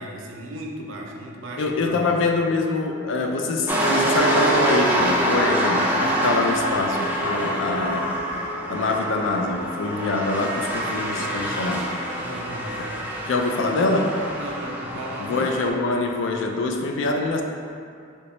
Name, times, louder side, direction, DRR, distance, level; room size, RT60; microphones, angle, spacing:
voice 1, 0.0-1.9 11.0-11.5 12.2-12.9 14.3-15.5, right 1 dB, 90° right, 0 dB, 0.5 m, -36 dB
voice 2, 1.6-8.1 8.7-11.9 13.2-14.2 15.3-17.4, left 3 dB, 70° left, 3 dB, 0.4 m, -24 dB
sound 1, 3.7-15.7, right 1 dB, 10° right, 0.4 m, -25 dB
3.3 x 2.9 x 3.0 m, 2.3 s
head